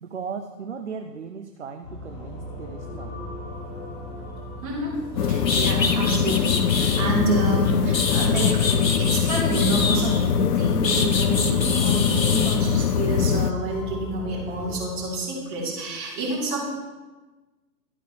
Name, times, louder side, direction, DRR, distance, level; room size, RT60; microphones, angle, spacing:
voice 1, 0.0-3.1 7.6-7.7, right 6 dB, 45° right, 7 dB, 0.5 m, -36 dB
sound 1, 1.8-14.8, left 1 dB, 40° left, 3.4 m, -37 dB
sound 2, 5.0-5.1 5.4-7.1 7.7-10.3 10.8-12.6, left 4 dB, 85° left, 1.0 m, -27 dB
sound 3, 5.2-13.5, left 7 dB, 70° left, 0.6 m, -22 dB
voice 2, 5.2-16.7, right 2 dB, 30° right, -6 dB, 3.2 m, -28 dB
12.0 x 9.0 x 3.1 m, 1.2 s
figure-of-eight pair, 135°, 49 cm